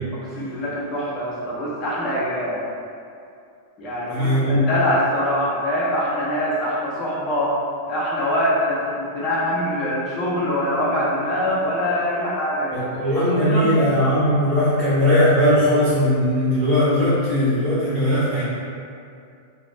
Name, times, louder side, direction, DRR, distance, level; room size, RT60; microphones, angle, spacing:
voice 1, 0.1-2.6 3.8-7.6 7.9-12.9 13.1-13.8, equal, 25° left, -8 dB, 0.6 m, -24 dB
voice 2, 4.1-4.7 12.7-18.4, equal, 15° right, -17 dB, 1.1 m, -19 dB
3.2 x 2.1 x 2.5 m, 2.4 s
supercardioid pair, 155°, 0 cm